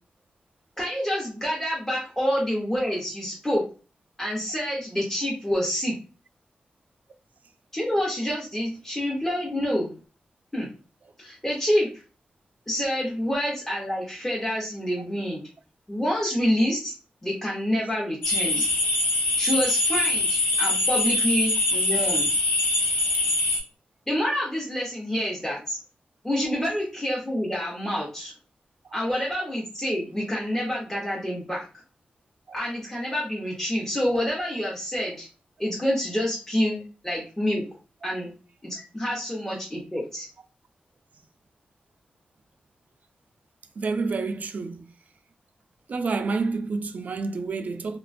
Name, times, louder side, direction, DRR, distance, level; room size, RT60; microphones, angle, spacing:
voice 1, 0.8-3.6 4.2-6.0 7.7-9.9 10.5-10.7 11.2-11.9 12.7-15.4 15.9-16.9 17.2-18.7 19.4-22.3 24.1-25.8 26.2-28.3 28.9-31.6 32.5-35.3 35.6-37.6 38.0-38.3 38.6-40.3, equal, 15° left, 0.7 m, -27 dB
sound 1, 18.2-23.6, left 2 dB, 80° left, 0.8 m, -23 dB
voice 2, 43.8-44.9 45.9-48.0, right 4 dB, 55° right, 0.3 m, -29 dB
2.8 x 2.2 x 2.5 m
wide cardioid pair, 140°, 3 cm